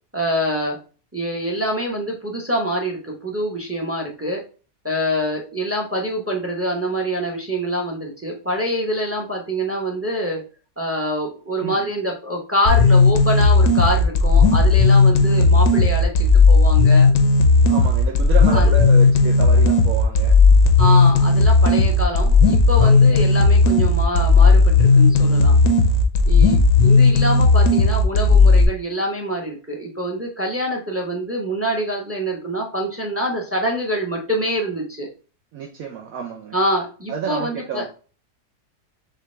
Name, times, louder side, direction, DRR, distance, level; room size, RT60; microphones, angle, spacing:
voice 1, 0.1-0.8 1.1-4.4 4.8-10.4 10.8-17.1 18.5-18.8 20.8-25.6 26.3-35.1 36.5-37.9, equal, 15° right, 1 dB, 0.6 m, -25 dB
sound 1, 12.7-28.7, left 3 dB, 65° left, 1.1 m, -14 dB
voice 2, 17.7-20.4 22.8-23.2 35.5-36.5 37.1-37.9, right 6 dB, 70° right, 1 dB, 1.1 m, -30 dB
6.7 x 2.3 x 3.2 m, 0.37 s
omnidirectional pair, 1.7 m